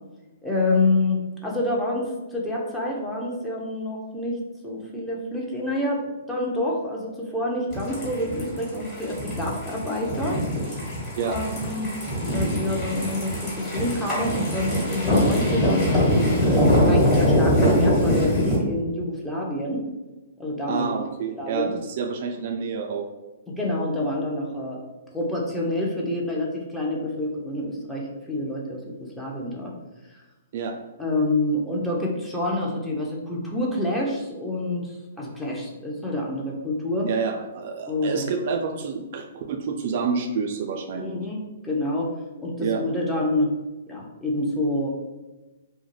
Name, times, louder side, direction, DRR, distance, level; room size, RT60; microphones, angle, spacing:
voice 1, 0.4-4.4 4.6-10.4 11.2-11.9 12.3-19.9 20.4-20.9 21.4-21.7 23.5-24.8 25.1-29.7 31.0-34.9 35.2-37.1 37.9-38.3 40.9-42.1 42.4-43.5 43.9-44.9, left 1 dB, 5° left, -3 dB, 0.5 m, -27 dB
sound 1, 7.7-18.6, equal, 20° left, 1.3 m, -23 dB
voice 2, 20.7-23.1 30.5-30.7 37.0-41.2 42.5-42.8, right 5 dB, 50° right, 3 dB, 0.3 m, -28 dB
2.2 x 2.0 x 3.1 m, 1.1 s
hypercardioid pair, 125°, 0 cm